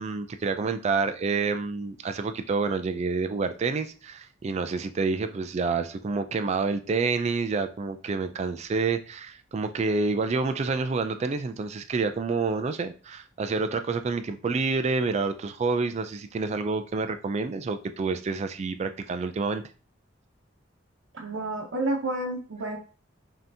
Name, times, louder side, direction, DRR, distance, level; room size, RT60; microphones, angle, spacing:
voice 1, 0.0-19.6, right 4 dB, 35° right, 0.3 m, -28 dB
voice 2, 21.1-22.8, right 2 dB, 85° right, 0.8 m, -30 dB
5.4 x 2.8 x 2.6 m
head